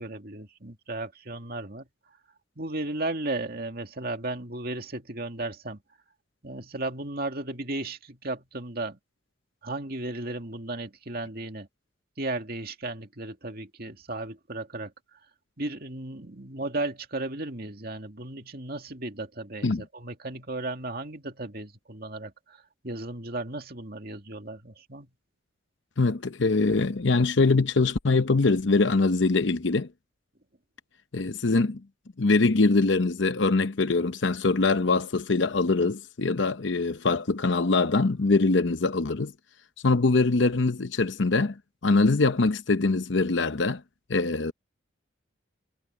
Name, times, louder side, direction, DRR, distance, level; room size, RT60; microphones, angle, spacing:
voice 1, 0.0-1.8 2.6-5.8 6.4-9.0 9.6-11.7 12.2-14.9 15.6-25.1, right 2 dB, 50° right, 2.4 m, -35 dB
voice 2, 26.0-29.9 31.1-31.8 32.2-39.3 39.8-41.5 41.8-43.8 44.1-44.5, left 3 dB, 65° left, 0.8 m, -23 dB
head